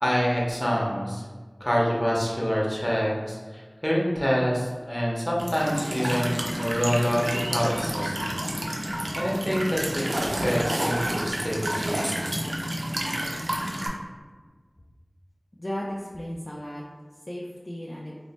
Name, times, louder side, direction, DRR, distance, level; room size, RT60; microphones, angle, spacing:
voice 1, 0.0-1.2 1.6-12.3, equal, 20° left, -4 dB, 0.8 m, -27 dB
Walk footsteps / Chirp tweet / Stream, 5.4-13.9, right 1 dB, 70° right, 0.5 m, -29 dB
voice 2, 15.6-16.8 17.3-18.2, equal, 40° left, -4 dB, 0.4 m, -35 dB
3.1 x 2.1 x 4.1 m, 1.4 s
wide cardioid pair, 45°, 0 cm